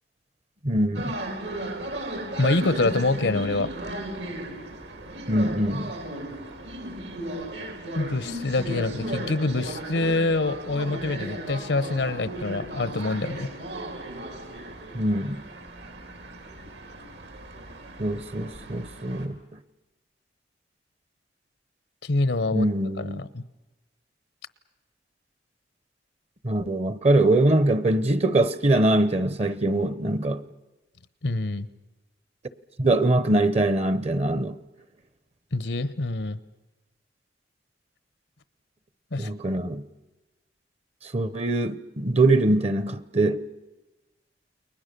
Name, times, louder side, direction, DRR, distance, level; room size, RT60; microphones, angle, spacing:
voice 1, 0.6-1.2 5.3-5.9 14.9-15.4 18.0-19.4 22.5-23.2 26.4-30.4 32.8-34.6 39.2-39.8 41.1-43.4, right 2 dB, 35° right, 0.9 m, -23 dB
sound 1, 0.9-19.2, right 1 dB, 75° right, 3.2 m, -35 dB
voice 2, 2.4-3.7 7.9-13.5 22.0-22.7 23.0-23.4 31.2-31.7 35.5-36.4 39.1-39.3, left 2 dB, 85° left, 1.0 m, -26 dB
29.5 x 21.5 x 6.8 m
head